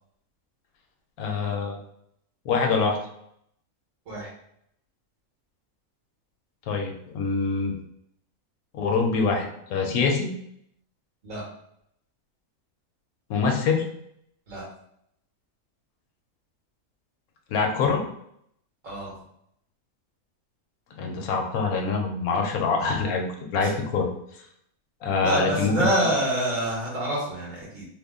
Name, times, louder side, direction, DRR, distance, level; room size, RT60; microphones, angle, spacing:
voice 1, 1.2-1.8 2.4-3.0 6.7-7.7 8.7-10.3 13.3-13.8 17.5-18.0 21.0-24.1 25.0-25.9, left 4 dB, 80° left, 2 dB, 1.1 m, -25 dB
voice 2, 25.2-27.9, right 1 dB, 60° right, -4 dB, 1.7 m, -27 dB
3.4 x 2.1 x 3.6 m, 0.72 s
omnidirectional pair, 1.5 m